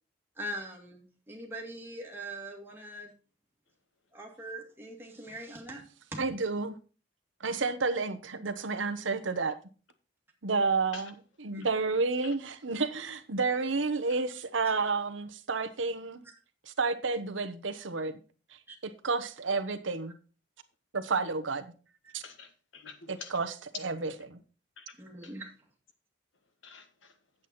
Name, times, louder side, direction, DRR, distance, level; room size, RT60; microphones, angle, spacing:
voice 1, 0.4-3.1 4.1-5.8 6.1-6.2 11.5-11.6 14.6-14.8 18.7-18.8 22.0-22.2 25.0-25.5, right 1 dB, 10° right, 2.1 m, -42 dB
voice 2, 6.2-6.8 7.4-9.6 10.4-11.1 11.4-16.2 16.7-18.2 18.8-20.1 20.9-21.7 22.1-22.2 23.1-24.4, right 4 dB, 90° right, 1.0 m, -30 dB
voice 3, 22.2-23.3 24.8-24.9 25.2-25.3 26.6-27.1, left 5 dB, 85° left, 1.4 m, -47 dB
8.9 x 8.1 x 4.2 m
head